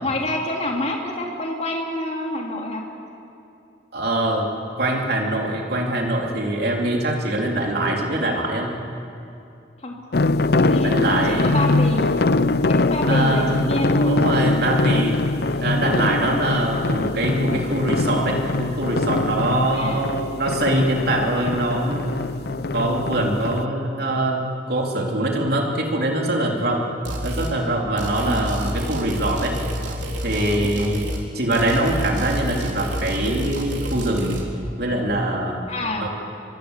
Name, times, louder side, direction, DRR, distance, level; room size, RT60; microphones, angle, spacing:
voice 1, 0.0-2.8 9.8-9.9 10.5-12.1 12.7-14.1 19.7-20.0 28.2-28.4 35.7-36.1, left 1 dB, 35° left, 0 dB, 3.3 m, -27 dB
voice 2, 3.9-4.5 4.8-8.7 10.8-11.5 13.1-13.7 14.1-15.2 15.6-22.1 22.7-24.4 24.7-26.8 27.2-29.5 30.2-31.1 31.3-34.4 34.8-35.6 36.0-36.1, right 1 dB, 55° right, 0 dB, 3.6 m, -23 dB
sound 1, 10.1-23.6, left 2 dB, 60° left, 0.6 m, -22 dB
sound 2, 27.1-27.6 28.0-31.3 31.5-34.4, equal, 85° right, 3.8 m, -29 dB
25.5 x 23.5 x 8.4 m, 2.6 s
head